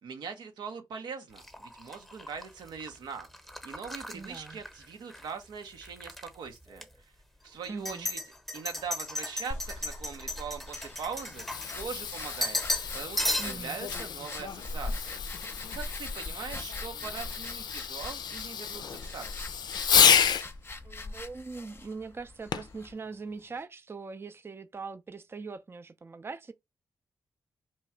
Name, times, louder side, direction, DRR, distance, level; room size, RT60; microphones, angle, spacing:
voice 1, 0.0-3.3 3.6-6.8 7.4-8.2 8.5-11.4 11.7-12.6 12.9-15.2 15.7-19.4, right 6 dB, 90° right, 0.8 m, -41 dB
sound 1, 1.4-5.3 5.6-6.3 6.8-6.9 7.6-12.0 12.4-12.9 13.2-13.8, left 1 dB, ahead, 0.9 m, -35 dB
voice 2, 4.1-4.6 7.7-8.1 13.4-13.8 20.8-26.5, right 4 dB, 35° right, 0.5 m, -41 dB
sound 2, 9.5-22.9, left 2 dB, 30° left, 0.6 m, -42 dB
Fireworks, 11.2-20.5 22.5-22.8 23.5-23.6, left 8 dB, 75° left, 0.4 m, -30 dB
3.0 x 2.4 x 4.3 m
cardioid pair, 55°, 7 cm